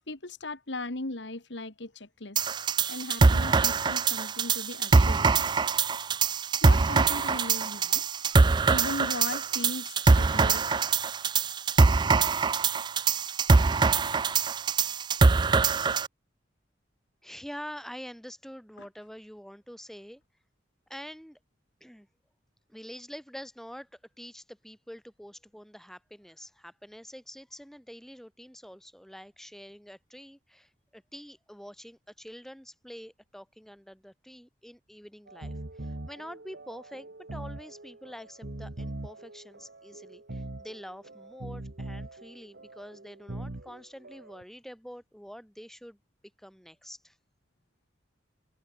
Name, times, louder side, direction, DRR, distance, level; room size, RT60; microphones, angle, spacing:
voice 1, 0.1-2.4 2.9-5.7 6.6-10.8 18.8-18.9, left 2 dB, 70° left, 2.2 m, -38 dB
sound 1, 2.4-16.1, right 4 dB, 25° right, 0.4 m, -23 dB
voice 2, 17.2-20.2 20.9-21.4 21.8-22.1 22.7-46.0 46.4-47.2, equal, ahead, 4.2 m, -46 dB
sound 2, 35.3-44.4, right 1 dB, 65° right, 1.4 m, -42 dB
head